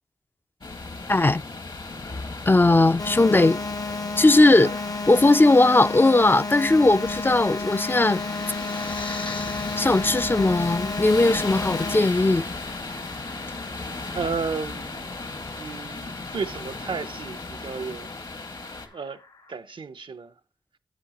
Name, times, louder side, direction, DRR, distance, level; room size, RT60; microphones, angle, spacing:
sound 1, 0.6-18.9, left 3 dB, 65° left, 1.7 m, -36 dB
voice 1, 1.1-1.4 2.5-3.6 4.2-4.8 5.1-8.2 9.8-12.4, left 2 dB, 25° left, 0.3 m, -18 dB
sound 2, 3.0-12.0, left 3 dB, 45° left, 0.7 m, -32 dB
sound 3, 4.2-19.5, left 3 dB, 85° left, 1.2 m, -43 dB
voice 2, 14.1-15.1 15.6-18.1 18.9-19.2 19.5-20.3, right 5 dB, 80° right, 0.6 m, -33 dB
10.0 x 8.4 x 2.9 m
cardioid pair, 55°, 8 cm